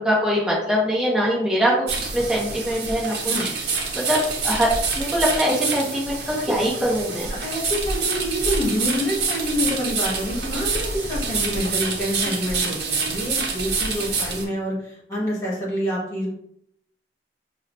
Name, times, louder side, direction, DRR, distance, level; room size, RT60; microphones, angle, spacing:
voice 1, 0.0-3.5 3.9-4.2 4.4-4.7 4.9-7.3, equal, 5° right, -4 dB, 0.7 m, -23 dB
sound 1, 1.9-14.4, right 4 dB, 65° right, 0.7 m, -27 dB
voice 2, 7.3-16.3, equal, 20° left, -5 dB, 1.5 m, -27 dB
5.6 x 2.1 x 2.6 m, 0.70 s
head